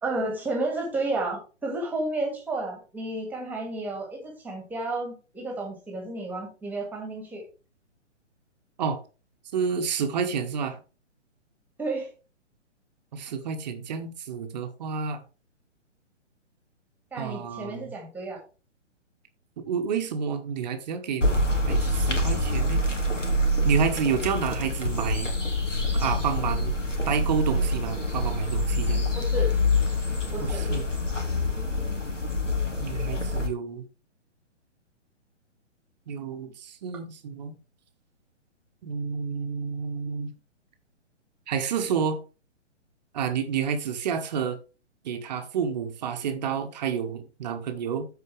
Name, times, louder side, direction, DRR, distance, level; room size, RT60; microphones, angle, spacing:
voice 1, 0.0-7.4 11.8-12.1 17.1-18.4 29.1-29.5 30.3-30.6, right 2 dB, 5° right, 2.0 m, -31 dB
voice 2, 9.5-10.8 13.1-15.2 17.2-17.9 19.6-22.8 23.6-25.3 25.9-26.7 27.1-29.2 30.4-30.9 32.8-33.8 36.1-37.5 38.8-40.3 41.5-42.2 43.1-44.6 45.0-48.1, right 6 dB, 35° right, 1.3 m, -29 dB
sound 1, 21.2-33.5, left 1 dB, 85° left, 2.2 m, -26 dB
13.5 x 4.6 x 3.3 m
figure-of-eight pair, 125°, 36 cm